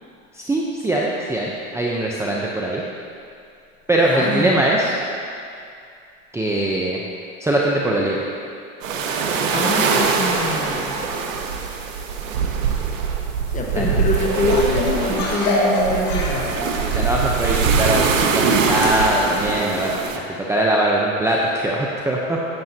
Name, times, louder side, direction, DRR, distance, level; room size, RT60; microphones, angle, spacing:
voice 1, 0.3-2.8 3.9-4.9 6.3-7.0 7.4-8.2 13.7-13.9 16.8-22.4, right 1 dB, 5° right, -3 dB, 0.8 m, -21 dB
voice 2, 4.0-4.6 9.5-11.3 13.5-16.5, left 2 dB, 20° left, 0 dB, 1.4 m, -24 dB
sound 1, 8.8-20.2, right 5 dB, 80° right, 1.2 m, -22 dB
sound 2, 13.6-19.9, left 1 dB, 45° left, 2.5 m, -28 dB
14.0 x 8.6 x 2.9 m, 2.4 s
supercardioid pair, 110°, 39 cm